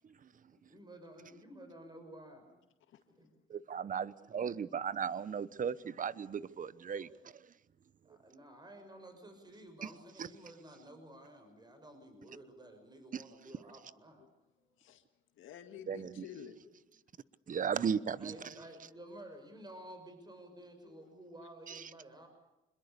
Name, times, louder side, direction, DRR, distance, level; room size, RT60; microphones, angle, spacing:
voice 1, 0.7-2.6 3.1-3.3 7.0-7.3 8.0-14.2 18.2-22.3, right 1 dB, 20° right, 5.9 m, -52 dB
voice 2, 3.5-7.1 13.1-13.2 15.9-16.2 17.5-18.3 21.7-21.8, right 7 dB, 40° right, 0.9 m, -36 dB
voice 3, 15.4-16.8 20.9-21.0, left 8 dB, 80° left, 1.9 m, -50 dB
26.5 x 21.5 x 6.8 m
cardioid pair, 90°, 20 cm